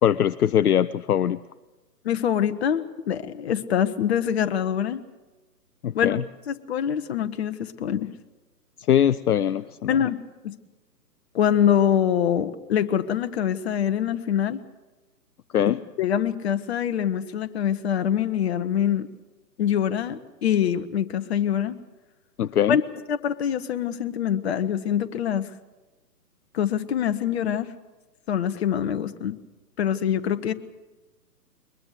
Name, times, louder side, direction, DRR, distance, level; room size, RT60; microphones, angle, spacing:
voice 1, 0.0-1.4 5.8-6.2 8.9-10.0 15.5-15.8 22.4-22.8, left 10 dB, 65° left, 15 dB, 0.6 m, -21 dB
voice 2, 2.0-5.0 5.9-8.1 9.9-10.2 10.4-10.5 11.3-14.6 15.6-19.1 19.6-21.8 22.7-22.8 23.1-25.5 26.5-27.7 28.3-29.4 29.8-30.5, left 9 dB, 40° left, 10 dB, 1.0 m, -24 dB
21.5 x 21.0 x 6.6 m, 1.1 s
figure-of-eight pair, 130°, 48 cm